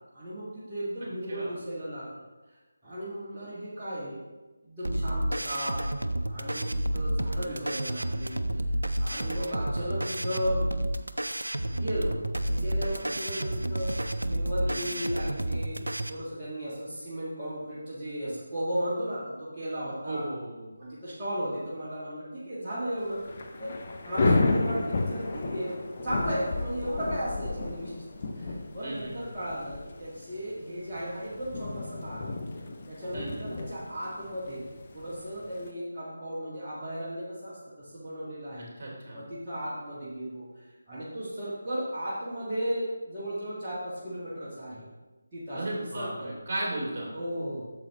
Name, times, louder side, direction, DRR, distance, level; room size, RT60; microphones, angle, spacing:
voice 1, 0.1-2.2 2.5-2.6 2.8-4.2 4.6-5.9 6.3-6.7 6.9-8.6 9.0-10.7 11.7-12.1 12.4-13.9 14.3-15.8 16.1-20.3 20.8-23.2 23.6-23.7 24.0-28.0 28.3-32.4 32.9-34.6 34.9-38.7 39.1-44.9 45.3-46.3 47.1-47.6, equal, 15° right, -13 dB, 1.6 m, -35 dB
sound 1, 4.8-16.1, right 1 dB, 75° right, 0.5 m, -30 dB
voice 2, 7.3-7.8 14.7-15.0 20.0-20.7 28.8-29.4 33.1-33.6 38.8-39.2 45.5-47.1, right 1 dB, 35° right, -4 dB, 2.5 m, -36 dB
Thunder / Rain, 23.0-35.7, left 2 dB, 35° left, 0.7 m, -32 dB
8.6 x 7.0 x 3.0 m, 1.2 s
figure-of-eight pair, 155°, 0 cm